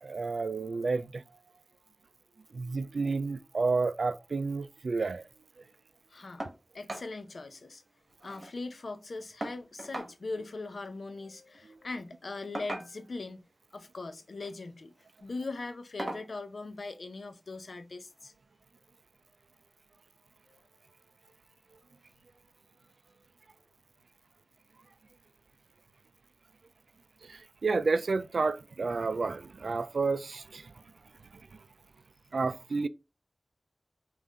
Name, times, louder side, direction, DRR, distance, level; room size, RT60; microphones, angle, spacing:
voice 1, 0.0-1.2 2.5-5.3 11.7-11.8 27.2-30.7 31.3-31.6 32.3-32.9, right 4 dB, 85° right, 0.3 m, -31 dB
voice 2, 6.1-6.5 6.7-7.8 8.2-13.4 13.7-14.9 15.2-18.3 20.5-20.6, left 3 dB, 75° left, 0.6 m, -40 dB
sound 1, 6.4-6.6 6.9-7.1 7.5-7.6 7.8-8.5 9.4-10.1 11.4-11.6 12.5-13.2 14.2-14.6 15.0-15.2 16.0-16.3 17.6-17.7 18.2-18.3, right 1 dB, 45° right, 1.3 m, -39 dB
5.4 x 2.5 x 3.6 m
wide cardioid pair, 75°, 0 cm